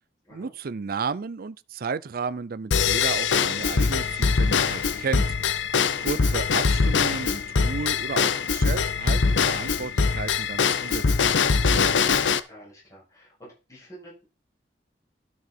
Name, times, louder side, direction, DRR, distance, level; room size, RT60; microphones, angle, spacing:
voice 1, 0.3-5.3 6.0-12.0, right 5 dB, 55° right, 0.5 m, -33 dB
Drum kit / Drum / Bell, 2.7-12.4, left 5 dB, 85° left, 0.7 m, -23 dB
Sink (filling or washing), 3.3-6.1, right 1 dB, 25° right, 2.4 m, -49 dB
voice 2, 5.9-6.3 12.5-14.2, right 1 dB, 20° left, 7.1 m, -48 dB
12.5 x 6.3 x 4.4 m
head